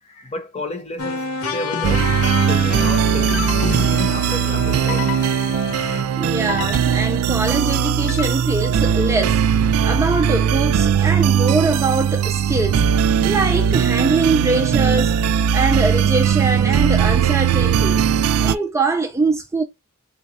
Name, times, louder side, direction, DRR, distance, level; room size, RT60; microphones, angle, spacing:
voice 1, 0.0-5.4 5.8-6.1 9.7-10.0 10.4-10.6 15.4-15.6, left 2 dB, 30° left, 0.9 m, -33 dB
sound 1, 1.0-6.0, left 3 dB, 85° left, 0.8 m, -27 dB
sound 2, 1.8-18.6, right 8 dB, 90° right, 0.3 m, -19 dB
sound 3, 2.1-2.4 3.3-4.0 4.9-5.8 6.5-7.3 8.1-8.7, left 9 dB, 60° left, 0.4 m, -32 dB
voice 2, 6.2-12.9 13.2-15.2 15.5-18.1 18.4-19.6, right 3 dB, 15° right, 0.3 m, -22 dB
3.9 x 2.3 x 4.1 m
head